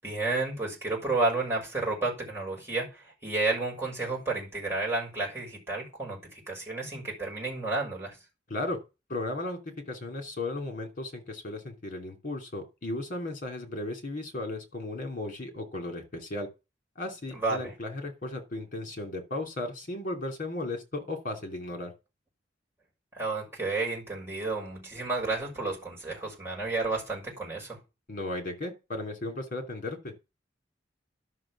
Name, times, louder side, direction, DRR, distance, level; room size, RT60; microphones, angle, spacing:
voice 1, 0.0-8.2 17.3-17.7 23.1-27.8, right 3 dB, 15° right, 6.2 m, -31 dB
voice 2, 9.1-9.6 9.9-16.5 17.0-21.9 28.1-30.1, left 2 dB, 45° left, 3.0 m, -35 dB
11.5 x 6.2 x 6.1 m
head